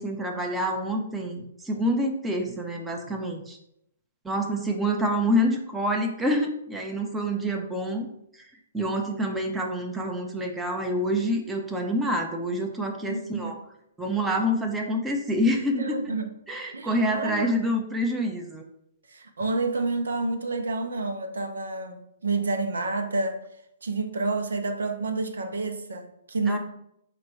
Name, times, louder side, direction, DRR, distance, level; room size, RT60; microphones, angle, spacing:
voice 1, 0.0-3.6 4.2-8.1 8.4-8.5 8.7-13.6 14.0-16.1 16.5-18.6 26.5-26.6, equal, 10° right, 1 dB, 0.6 m, -27 dB
voice 2, 13.0-13.5 15.8-16.3 16.7-17.5 19.1-23.4 23.8-26.6, right 3 dB, 70° right, 6 dB, 0.6 m, -29 dB
4.8 x 2.2 x 4.5 m, 0.76 s
figure-of-eight pair, 120°, 0 cm